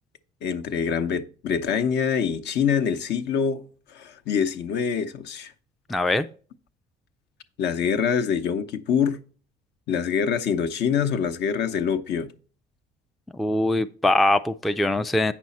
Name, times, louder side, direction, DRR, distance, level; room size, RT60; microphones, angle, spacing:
voice 1, 0.4-3.6 3.9-5.5 7.6-9.2 9.9-12.3, left 7 dB, 60° left, 0.9 m, -25 dB
voice 2, 5.9-6.3 13.3-15.3, left 1 dB, ahead, 0.3 m, -22 dB
8.5 x 6.1 x 4.2 m
cardioid pair, 125°, 20 cm